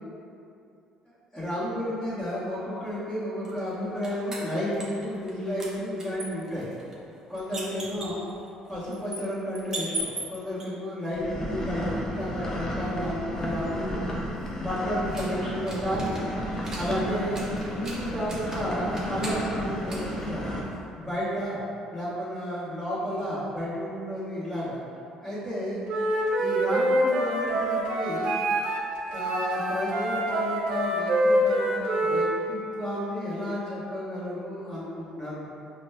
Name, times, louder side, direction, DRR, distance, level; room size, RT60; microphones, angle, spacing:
voice 1, 1.3-6.7 7.3-8.2 8.7-14.1 14.6-16.2 16.7-20.5 21.0-21.6 21.9-24.8 25.2-25.8 26.4-28.3 29.0-35.4, equal, 10° left, -14 dB, 1.1 m, -32 dB
sound 1, 3.4-5.3 5.6-10.6 13.4-20.9, right 1 dB, 25° right, 0.7 m, -40 dB
sound 2, 11.1-20.6, equal, 25° left, 0.5 m, -33 dB
Wind instrument woodwind instrument, 25.9-28.8 29.1-32.3, right 1 dB, 60° right, 0.5 m, -25 dB
4.9 x 2.1 x 2.2 m, 2.6 s
cardioid pair, 100°, 2 cm